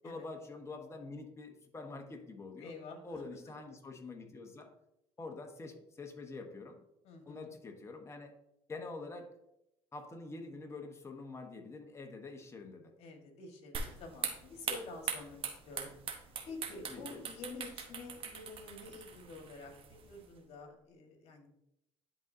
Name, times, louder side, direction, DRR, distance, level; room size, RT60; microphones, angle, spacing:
voice 1, 0.0-2.7 3.0-4.7 5.2-6.8 7.2-8.3 8.7-9.3 9.9-12.9 16.9-17.2, left 3 dB, 25° left, 4 dB, 1.2 m, -46 dB
voice 2, 2.6-3.2 7.0-7.6 13.0-15.9 16.5-21.5, left 3 dB, 60° left, 3 dB, 1.7 m, -49 dB
sound 1, 13.7-20.3, right 6 dB, 50° right, 1.1 m, -42 dB
10.5 x 3.9 x 2.8 m, 0.81 s
supercardioid pair, 100°, 12 cm